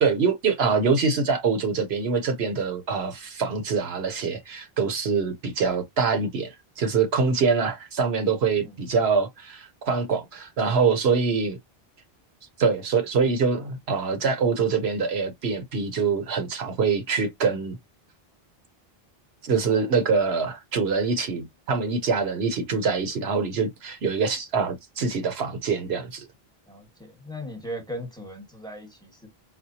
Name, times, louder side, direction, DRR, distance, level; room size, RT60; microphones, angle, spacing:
voice 1, 0.0-11.6 12.6-17.8 19.4-26.3, right 5 dB, 80° right, 1.1 m, -24 dB
voice 2, 26.7-29.3, equal, 5° left, 1.2 m, -38 dB
4.2 x 2.2 x 2.7 m
omnidirectional pair, 1.0 m